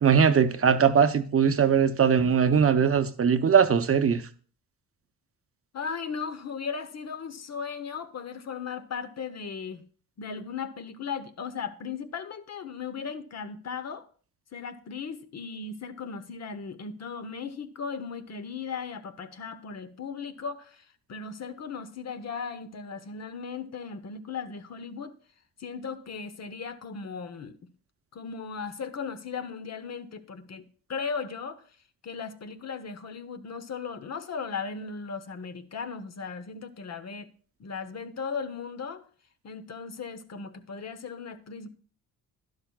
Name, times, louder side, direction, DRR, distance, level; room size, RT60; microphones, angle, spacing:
voice 1, 0.0-4.2, right 7 dB, 35° right, 0.8 m, -21 dB
voice 2, 5.7-9.8 10.2-14.1 14.5-25.1 25.6-27.6 28.1-31.6 32.0-37.3 37.6-39.0 39.4-41.7, left 5 dB, 45° left, 0.9 m, -37 dB
11.5 x 11.0 x 2.3 m
cardioid pair, 85°, 37 cm